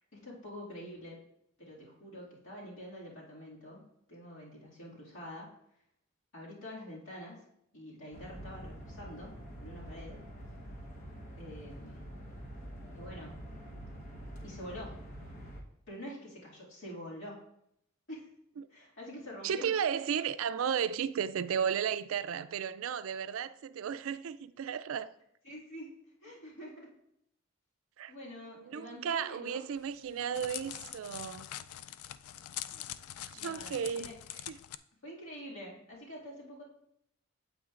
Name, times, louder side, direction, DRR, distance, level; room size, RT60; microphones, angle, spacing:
voice 1, 0.1-1.2 1.6-5.5 6.3-7.4 7.7-10.2 11.4-12.0 12.9-13.5 14.4-14.9 15.9-17.4 18.1-18.3 18.7-19.7 25.4-26.9 28.1-29.6 32.6-33.0 33.3-34.1 35.0-36.6, equal, 60° left, 2.2 m, -46 dB
sound 1, 8.1-15.6, equal, 35° left, 1.1 m, -46 dB
voice 2, 19.4-25.1 28.0-28.1 28.6-31.5 33.3-34.1 34.5-34.6, right 7 dB, 70° right, 0.3 m, -34 dB
Crackle, 29.8-34.8, left 11 dB, 90° left, 0.3 m, -44 dB
8.8 x 7.9 x 2.5 m
head